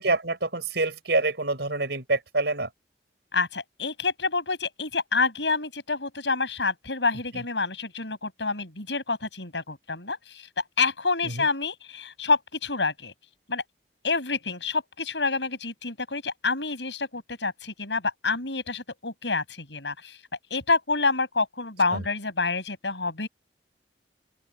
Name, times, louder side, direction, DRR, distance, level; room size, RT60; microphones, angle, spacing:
voice 1, 0.0-2.7 7.3-7.4 11.2-11.5 21.9-22.0, right 2 dB, 70° right, 6.9 m, -26 dB
voice 2, 3.3-13.1 13.5-13.6 14.0-20.2 20.5-23.3, left 4 dB, 80° left, 7.7 m, -28 dB
open air
head